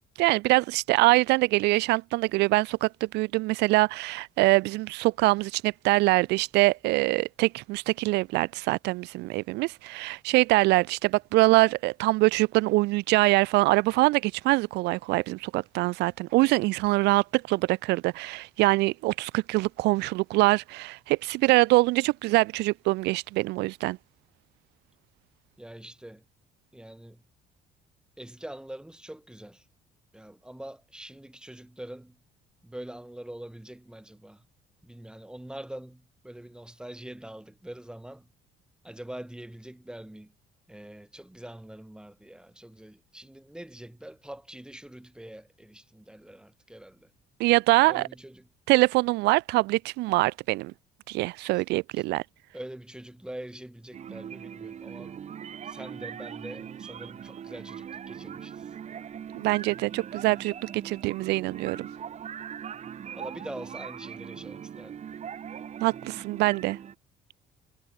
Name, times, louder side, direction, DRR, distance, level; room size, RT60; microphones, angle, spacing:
voice 1, 0.2-24.0 47.4-48.1 48.7-50.7 51.1-52.2 59.3-61.9 65.8-66.8, right 21 dB, 85° right, 0.6 m, -24 dB
voice 2, 25.6-26.2 26.7-27.2 28.2-29.6 30.1-32.2 32.6-34.4 34.8-38.3 38.8-40.3 40.7-47.1 47.8-48.5 51.5-51.6 52.0-52.1 52.5-55.2 55.6-58.7 63.1-65.0, right 1 dB, 5° right, 6.2 m, -44 dB
sound 1, 53.9-67.0, right 8 dB, 40° right, 1.3 m, -41 dB
cardioid pair, 110°, 17 cm